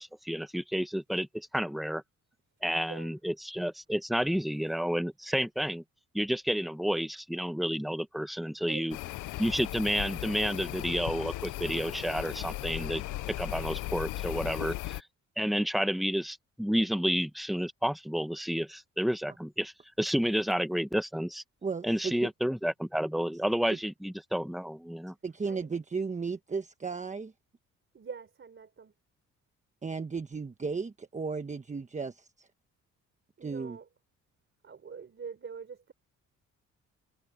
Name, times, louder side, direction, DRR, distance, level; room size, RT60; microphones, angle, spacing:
voice 1, 0.0-2.0 2.6-5.8 6.1-9.0 9.4-13.0 13.3-15.0 15.4-21.4 21.8-25.1, equal, ahead, 1.2 m, -30 dB
voice 2, 2.8-3.2 8.7-8.9 25.4-25.7 27.9-28.9 33.4-33.9 34.6-35.9, right 6 dB, 40° right, 4.1 m, -44 dB
sound 1, 8.9-15.0, left 17 dB, 85° left, 0.7 m, -37 dB
voice 3, 21.6-22.1 23.7-23.8 25.2-27.3 29.8-32.5 33.4-33.8, right 4 dB, 25° right, 1.2 m, -35 dB
cardioid pair, 90°, 30 cm